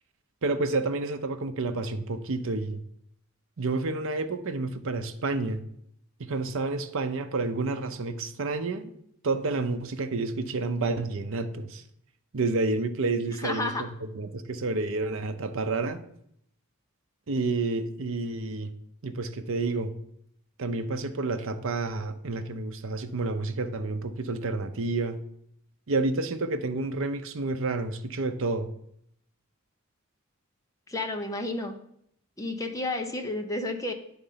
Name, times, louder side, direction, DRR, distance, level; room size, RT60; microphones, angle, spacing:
voice 1, 0.4-2.8 3.6-5.6 6.2-8.9 9.2-11.8 12.3-13.9 14.1-16.0 17.3-18.7 19.0-19.9 20.6-25.2 25.9-28.7, right 3 dB, 65° right, 8 dB, 0.7 m, -29 dB
voice 2, 13.4-13.9 30.9-31.7 32.4-33.9, left 2 dB, 15° left, 4 dB, 0.8 m, -31 dB
9.7 x 3.9 x 5.6 m, 0.71 s
head